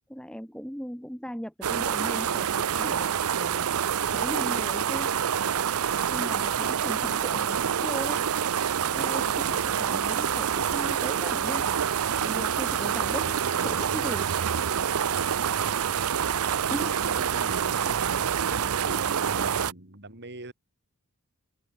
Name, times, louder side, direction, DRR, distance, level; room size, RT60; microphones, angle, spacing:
voice 1, 0.1-3.7 4.1-5.1 6.1-8.2 8.9-11.7 12.2-14.3 16.7-16.9, equal, 5° left, 2.6 m, -38 dB
sound 1, 1.6-19.7, right 8 dB, 70° right, 0.6 m, -27 dB
voice 2, 16.8-20.5, right 2 dB, 50° right, 5.4 m, -40 dB
open air
head